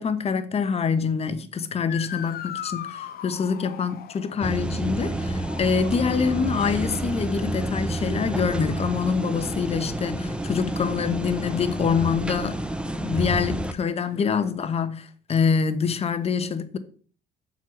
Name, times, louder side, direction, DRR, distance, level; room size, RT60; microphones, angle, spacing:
voice 1, 0.0-12.6 12.9-16.8, left 6 dB, 35° left, 1.1 m, -25 dB
Motor vehicle (road) / Siren, 1.9-14.5, left 10 dB, 65° left, 0.9 m, -43 dB
sound 1, 4.4-13.7, right 1 dB, 5° right, 0.7 m, -29 dB
7.7 x 5.7 x 7.1 m
cardioid pair, 110°, 17 cm